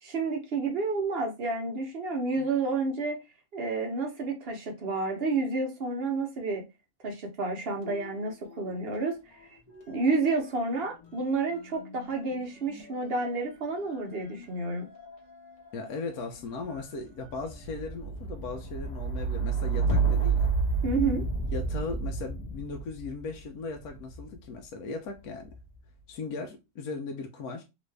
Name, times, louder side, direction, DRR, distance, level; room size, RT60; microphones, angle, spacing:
voice 1, 0.0-3.2 3.5-6.6 7.0-9.2 9.4-9.5 9.9-14.8 20.8-21.2, right 3 dB, 50° right, 0.8 m, -30 dB
sound 1, 7.8-9.1 9.4-24.4 25.2-25.8, right 4 dB, 30° left, 0.9 m, -33 dB
voice 2, 15.7-20.5 21.4-25.5 26.1-27.6, left 4 dB, 75° left, 1.1 m, -38 dB
3.0 x 2.6 x 3.2 m
omnidirectional pair, 1.7 m